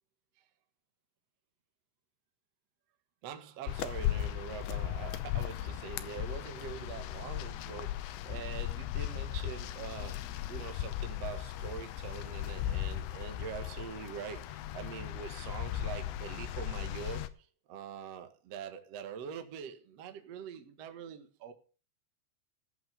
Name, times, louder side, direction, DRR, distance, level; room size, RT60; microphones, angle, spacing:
voice 1, 3.2-21.5, right 8 dB, 80° right, 1.4 m, -44 dB
sound 1, 3.7-17.3, left 12 dB, 75° left, 3.0 m, -37 dB
14.0 x 6.7 x 6.8 m
omnidirectional pair, 5.5 m